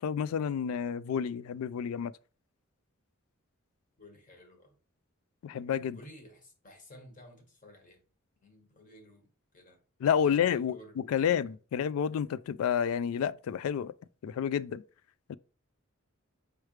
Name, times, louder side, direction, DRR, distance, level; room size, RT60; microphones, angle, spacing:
voice 1, 0.0-2.1 5.4-6.0 10.0-13.9 14.2-14.8 15.3-15.4, left 8 dB, 85° left, 0.3 m, -30 dB
voice 2, 4.0-4.8 5.9-8.0 8.4-9.8 10.3-11.5, equal, 40° left, 1.3 m, -54 dB
4.7 x 3.2 x 3.2 m
head